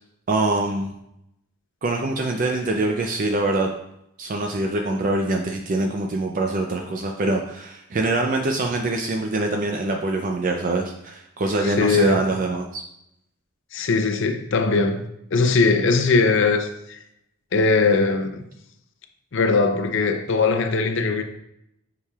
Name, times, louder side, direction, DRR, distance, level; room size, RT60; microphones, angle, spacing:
voice 1, 0.3-0.9 1.8-3.7 4.2-12.8, right 2 dB, 40° right, 0.4 m, -24 dB
voice 2, 11.6-12.2 13.7-15.0 15.3-17.0 17.5-18.4 19.3-21.2, left 4 dB, 55° left, 0.6 m, -20 dB
8.3 x 4.9 x 2.3 m
head